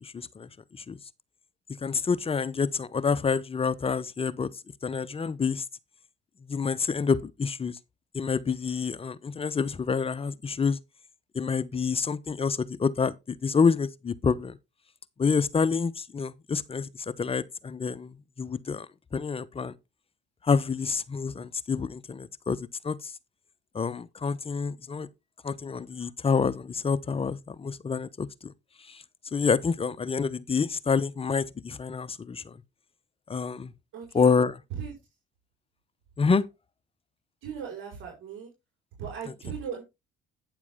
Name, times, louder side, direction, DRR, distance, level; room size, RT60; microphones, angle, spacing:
voice 1, 0.0-1.0 1.8-4.5 4.8-5.6 6.5-7.8 8.1-10.8 11.3-14.6 15.2-16.9 17.2-19.7 20.4-22.6 22.8-23.1 23.7-25.1 25.4-28.5 28.9-29.0 29.3-32.6 33.3-33.7 34.1-34.5 36.2-36.4, left 5 dB, 25° left, 0.8 m, -28 dB
voice 2, 33.9-34.3 34.8-34.9 37.4-38.5 39.0-39.8, right 7 dB, 70° right, 5.1 m, -37 dB
9.6 x 7.2 x 3.7 m
supercardioid pair, 80°, 21 cm